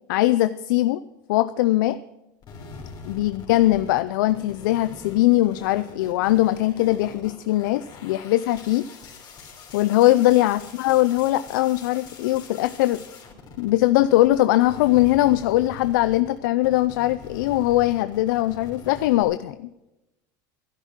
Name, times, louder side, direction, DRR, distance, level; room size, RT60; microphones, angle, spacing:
voice 1, 0.1-1.0 1.3-2.0 3.0-8.8 9.7-13.0 13.6-19.6, left 16 dB, 85° left, 13 dB, 0.5 m, -21 dB
sound 1, 2.4-14.4 14.6-19.2, left 4 dB, 40° left, 3.5 m, -43 dB
11.5 x 10.0 x 6.0 m, 0.95 s
supercardioid pair, 115°, 10 cm